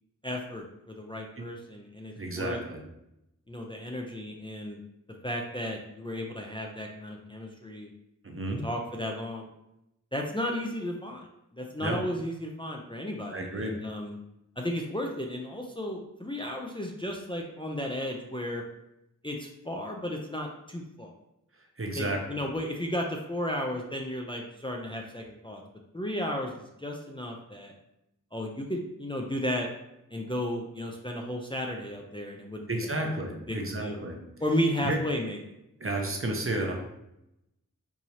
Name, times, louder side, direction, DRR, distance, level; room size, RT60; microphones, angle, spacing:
voice 1, 0.2-2.6 3.5-4.8 5.2-7.9 8.6-9.5 10.1-11.3 11.5-14.2 14.6-18.6 19.2-21.1 21.9-25.6 25.9-27.7 28.3-29.7 30.1-32.9 33.5-34.0 34.4-35.4, left 1 dB, 15° left, 0 dB, 0.5 m, -34 dB
voice 2, 2.1-2.8 8.2-8.7 11.8-12.0 13.3-13.7 21.8-22.5 32.7-34.2 34.8-35.0 35.8-36.7, right 1 dB, 40° right, 1 dB, 0.7 m, -32 dB
4.7 x 2.7 x 2.8 m, 0.85 s
wide cardioid pair, 60°, 33 cm